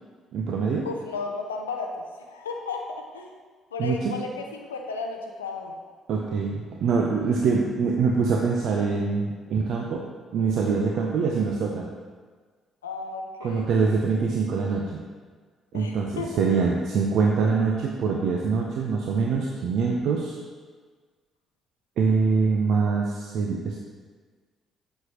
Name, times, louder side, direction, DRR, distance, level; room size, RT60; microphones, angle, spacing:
voice 1, 0.3-0.9 3.8-4.1 6.1-10.0 10.3-11.9 13.4-15.0 15.7-20.4 22.0-23.8, right 5 dB, 65° right, 0 dB, 0.7 m, -24 dB
voice 2, 0.8-2.8 3.1-3.3 3.7-5.8 12.8-13.9 15.7-16.6, left 4 dB, 90° left, 2 dB, 0.5 m, -34 dB
7.7 x 6.7 x 3.0 m, 1.5 s
hypercardioid pair, 45°, 0 cm